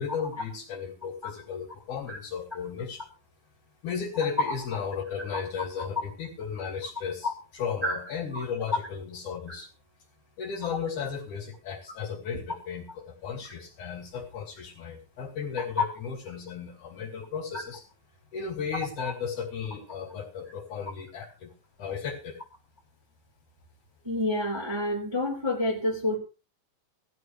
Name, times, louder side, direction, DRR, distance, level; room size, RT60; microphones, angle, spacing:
voice 1, 0.0-3.0 3.8-9.7 10.4-17.8 18.3-21.5 21.8-22.4, left 6 dB, 65° left, 1 dB, 3.8 m, -35 dB
voice 2, 24.0-26.2, left 1 dB, 10° right, -1 dB, 3.1 m, -28 dB
16.5 x 13.0 x 3.1 m, 0.31 s
omnidirectional pair, 3.8 m